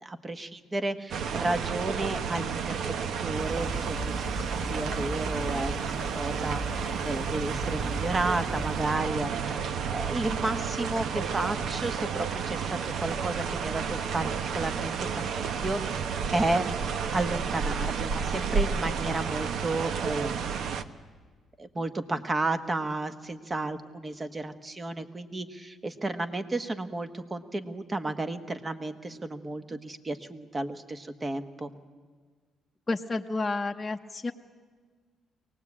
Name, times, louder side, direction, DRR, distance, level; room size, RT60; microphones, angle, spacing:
voice 1, 0.0-15.9 16.3-16.7 17.1-20.3 21.6-31.7, right 2 dB, 25° right, 10 dB, 1.4 m, -32 dB
sound 1, 1.1-20.8, right 6 dB, 70° right, 1.0 m, -31 dB
sound 2, 3.3-8.8, equal, ahead, 1.2 m, -38 dB
voice 2, 32.9-34.3, left 3 dB, 20° left, 2 dB, 0.8 m, -30 dB
23.5 x 19.0 x 8.7 m, 1.5 s
cardioid pair, 90°, 0 cm